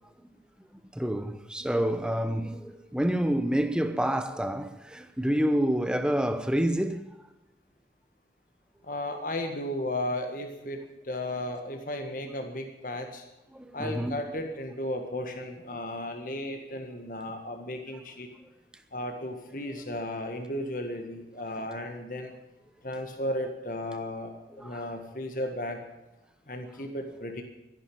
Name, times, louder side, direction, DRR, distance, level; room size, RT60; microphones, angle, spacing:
voice 1, 0.9-7.1 13.5-14.2 21.5-21.6 24.5-24.8, equal, 5° right, 0.9 m, -28 dB
voice 2, 8.8-13.2 13.7-18.3 18.9-22.3 22.8-25.8 26.5-27.4, left 1 dB, 50° left, 1.7 m, -34 dB
13.5 x 11.0 x 8.6 m
head